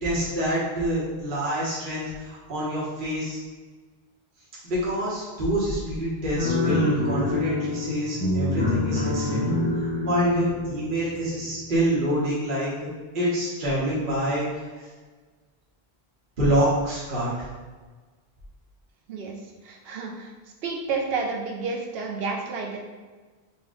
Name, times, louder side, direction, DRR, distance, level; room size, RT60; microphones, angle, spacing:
voice 1, 0.0-3.4 4.6-9.4 9.8-14.9 16.4-17.5, equal, 55° right, -8 dB, 1.2 m, -26 dB
sound 1, 6.4-11.7, left 2 dB, 10° left, 0.6 m, -26 dB
voice 2, 19.6-20.3 20.6-22.8, right 4 dB, 75° right, 1 dB, 0.9 m, -30 dB
4.2 x 2.2 x 3.7 m, 1.4 s
omnidirectional pair, 1.0 m